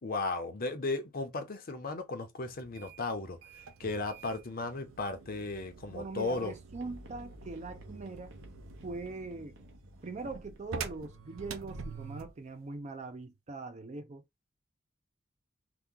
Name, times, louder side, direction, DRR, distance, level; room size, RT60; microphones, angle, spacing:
voice 1, 0.0-6.5, left 3 dB, 50° left, 0.7 m, -35 dB
sound 1, 2.5-12.4, right 5 dB, 85° right, 0.5 m, -47 dB
voice 2, 5.9-8.3 8.8-9.5 10.0-14.2, right 3 dB, 35° right, 0.5 m, -42 dB
sound 2, 6.7-11.9, left 1 dB, 65° right, 0.9 m, -53 dB
2.9 x 2.2 x 3.7 m
head